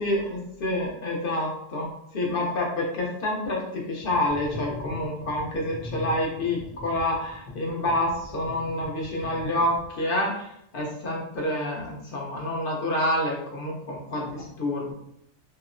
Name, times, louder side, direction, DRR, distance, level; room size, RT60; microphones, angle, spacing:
voice 1, 0.0-10.4 10.7-14.9, left 1 dB, 60° left, -2 dB, 0.7 m, -28 dB
sound 1, 4.0-10.1, left 2 dB, 80° left, 1.0 m, -40 dB
2.8 x 2.0 x 2.3 m, 0.76 s
omnidirectional pair, 1.2 m